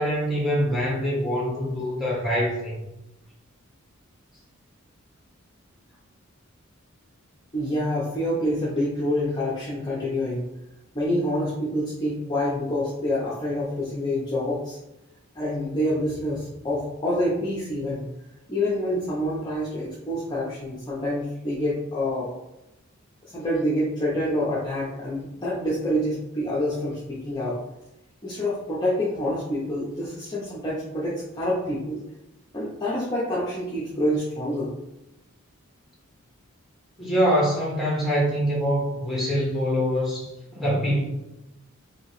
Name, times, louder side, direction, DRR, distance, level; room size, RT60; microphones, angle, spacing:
voice 1, 0.0-2.8 37.0-41.0, equal, ahead, -5 dB, 0.9 m, -24 dB
voice 2, 7.5-10.5 10.9-14.8 15.4-18.0 18.5-22.3 23.2-27.6 28.2-32.0 32.5-34.7, left 1 dB, 20° left, -7 dB, 0.5 m, -27 dB
2.8 x 2.7 x 3.1 m, 0.92 s
head